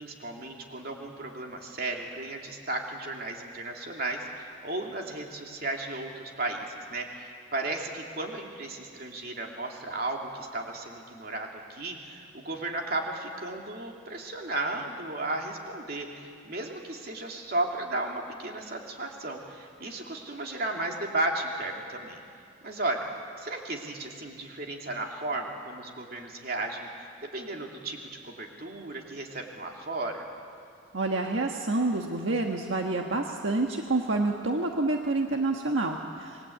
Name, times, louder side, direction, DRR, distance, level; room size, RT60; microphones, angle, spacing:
voice 1, 0.0-22.2 22.6-23.1 23.4-30.3, right 2 dB, 50° right, 1 dB, 2.8 m, -34 dB
voice 2, 30.9-36.5, right 2 dB, 75° right, 2 dB, 1.4 m, -28 dB
27.5 x 21.0 x 8.5 m, 2.4 s
head